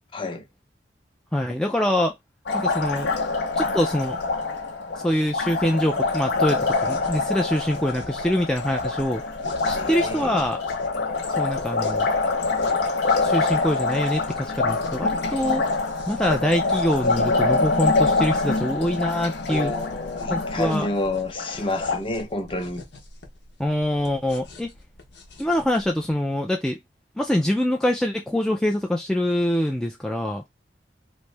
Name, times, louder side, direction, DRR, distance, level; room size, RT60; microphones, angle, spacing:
voice 1, 0.1-0.5 9.6-10.4 19.5-22.8, left 2 dB, 30° left, 0.7 m, -29 dB
voice 2, 1.3-2.1 2.5-3.1 3.6-4.2 5.0-9.2 9.6-10.6 11.4-12.1 13.2-15.6 16.1-19.7 20.3-20.9 23.6-24.7 25.4-26.8 27.2-30.4, left 1 dB, 5° left, 0.3 m, -24 dB
Liquid, 2.5-22.0, left 3 dB, 70° left, 0.7 m, -25 dB
sound 1, 6.6-26.1, left 2 dB, 90° left, 1.0 m, -45 dB
3.1 x 2.6 x 3.3 m
head